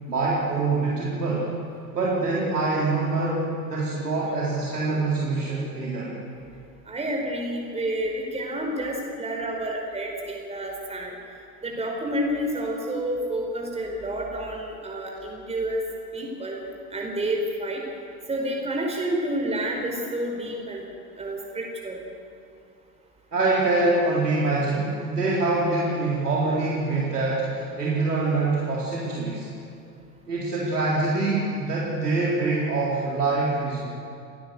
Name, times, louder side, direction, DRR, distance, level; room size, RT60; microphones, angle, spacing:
voice 1, 0.1-1.5 1.9-6.1 23.3-29.5 30.3-33.8, right 3 dB, 80° right, -5 dB, 4.2 m, -25 dB
voice 2, 6.9-11.1 11.6-15.8 16.1-16.6 16.9-17.8 18.3-20.8 21.1-22.0, right 1 dB, 15° right, 0 dB, 4.8 m, -29 dB
29.5 x 19.0 x 7.9 m, 2.5 s
figure-of-eight pair, 85°, 46 cm